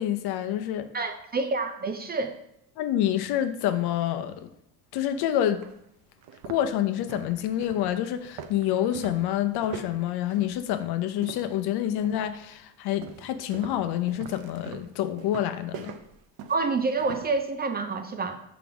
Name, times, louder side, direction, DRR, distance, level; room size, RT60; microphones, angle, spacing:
voice 1, 0.0-0.9 2.8-4.5 4.9-5.6 6.4-16.0, left 11 dB, 60° left, 9 dB, 0.7 m, -27 dB
voice 2, 0.9-2.4 16.5-18.4, right 3 dB, 20° right, 7 dB, 0.5 m, -28 dB
sound 1, 5.0-5.1 5.6-5.7 6.2-11.7 12.0-12.4 13.0-17.4, right 7 dB, 55° right, 0.7 m, -43 dB
5.3 x 4.9 x 4.8 m, 0.79 s
cardioid pair, 110°, 43 cm